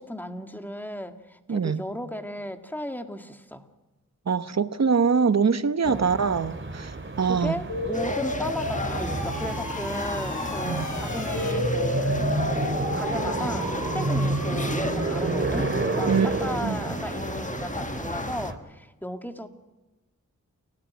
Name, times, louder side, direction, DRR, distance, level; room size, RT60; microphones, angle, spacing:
voice 1, 0.0-3.7 5.9-6.2 7.2-12.2 12.7-15.7 16.0-19.5, equal, 5° left, 2.0 m, -35 dB
voice 2, 1.5-1.8 4.3-7.6 10.6-10.9 16.1-16.3 16.6-16.8, right 5 dB, 55° right, 1.2 m, -24 dB
sound 1, 5.8-18.6, right 2 dB, 40° right, 2.5 m, -30 dB
sound 2, 7.7-15.2, left 1 dB, 70° left, 5.5 m, -32 dB
sound 3, 7.9-18.5, left 2 dB, 25° left, 1.4 m, -35 dB
29.0 x 18.0 x 6.1 m
wide cardioid pair, 70°, 32 cm